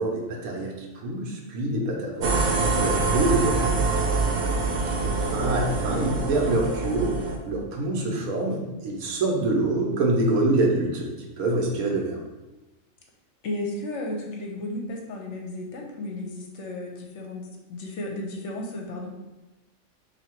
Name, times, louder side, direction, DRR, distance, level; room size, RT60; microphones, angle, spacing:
voice 1, 0.0-3.9 5.0-12.2, right 2 dB, 90° right, 0 dB, 1.2 m, -26 dB
sound 1, 2.2-7.4, right 3 dB, 65° right, 0.8 m, -25 dB
voice 2, 13.4-19.1, left 1 dB, 65° left, 0 dB, 0.9 m, -34 dB
2.8 x 2.7 x 4.4 m, 1.1 s
omnidirectional pair, 1.4 m